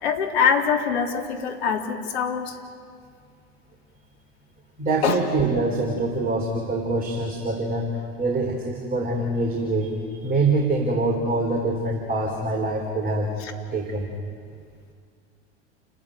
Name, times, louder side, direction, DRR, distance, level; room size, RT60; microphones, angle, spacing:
voice 1, 0.0-2.6 5.0-5.2 13.4-13.5, left 6 dB, 65° left, 2 dB, 3.5 m, -23 dB
voice 2, 4.8-13.3 13.7-14.1, right 2 dB, 25° right, 2 dB, 3.8 m, -25 dB
29.5 x 15.0 x 9.4 m, 2.1 s
figure-of-eight pair, 85°, 34 cm